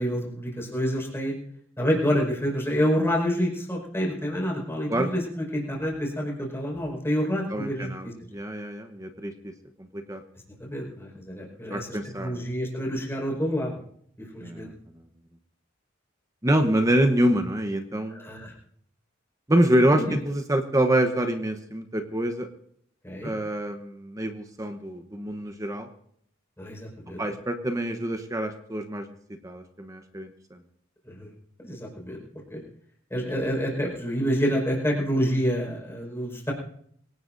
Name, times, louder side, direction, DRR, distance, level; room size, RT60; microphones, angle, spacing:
voice 1, 0.0-1.3 1.8-8.1 10.6-11.9 12.2-13.8 14.3-14.7 18.1-18.5 19.9-20.1 23.0-23.3 26.6-27.2 31.1-31.3 31.6-32.2 32.5-32.6 33.1-36.5, equal, 15° left, -1 dB, 5.2 m, -28 dB
voice 2, 7.5-9.5 9.8-10.2 11.7-12.4 14.4-14.7 16.4-18.3 19.5-22.5 23.2-25.9 27.2-29.1 29.4-30.3, right 1 dB, 15° right, 7 dB, 0.9 m, -26 dB
25.5 x 17.5 x 2.6 m, 0.67 s
head